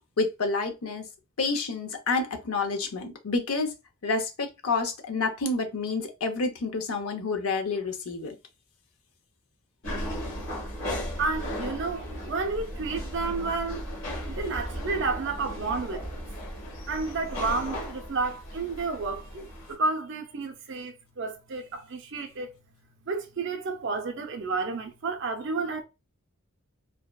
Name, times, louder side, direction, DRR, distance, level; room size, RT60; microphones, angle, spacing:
voice 1, 0.2-1.0 1.4-3.7 4.0-8.3, left 3 dB, 75° left, 0.6 m, -29 dB
sound 1, 9.8-19.7, equal, 60° left, 1.1 m, -36 dB
voice 2, 11.2-13.8 14.1-16.2 16.9-22.6 23.1-25.8, right 3 dB, 55° right, 0.5 m, -31 dB
2.7 x 2.1 x 2.2 m
head